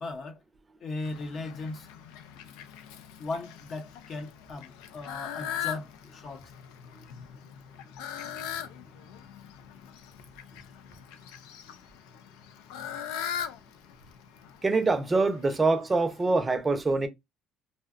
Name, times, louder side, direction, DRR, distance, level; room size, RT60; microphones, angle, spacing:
voice 1, 0.0-0.4 0.8-1.9 3.2-6.5, left 3 dB, 50° left, 0.7 m, -37 dB
Fowl, 1.0-16.4, left 9 dB, 85° left, 0.4 m, -41 dB
voice 2, 14.6-17.1, right 3 dB, 25° right, 0.5 m, -24 dB
2.7 x 2.0 x 2.4 m
supercardioid pair, 80°, 0 cm